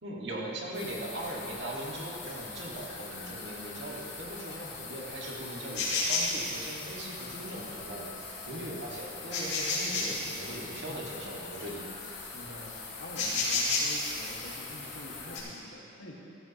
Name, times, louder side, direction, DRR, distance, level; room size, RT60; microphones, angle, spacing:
voice 1, 0.0-11.9, right 1 dB, 60° right, -4 dB, 2.0 m, -40 dB
sound 1, 0.7-15.4, left 3 dB, 55° left, 2.9 m, -36 dB
voice 2, 4.4-4.8 8.4-8.8 10.9-11.1 12.3-16.1, left 1 dB, 80° left, -2 dB, 1.8 m, -47 dB
15.5 x 13.0 x 3.0 m, 2.9 s
head